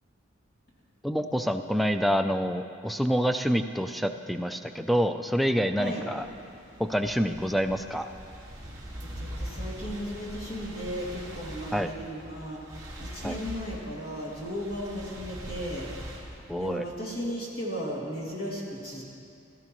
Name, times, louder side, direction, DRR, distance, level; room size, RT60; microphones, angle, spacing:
voice 1, 1.0-6.2 6.8-8.1 11.7-11.9 13.2-13.4 16.5-16.9, equal, ahead, 6 dB, 0.3 m, -27 dB
sound 1, 6.1-17.0, equal, 20° right, 1.8 m, -42 dB
voice 2, 9.2-15.9 16.6-19.0, equal, 50° left, -6 dB, 2.7 m, -35 dB
16.0 x 13.5 x 3.1 m, 2.5 s
head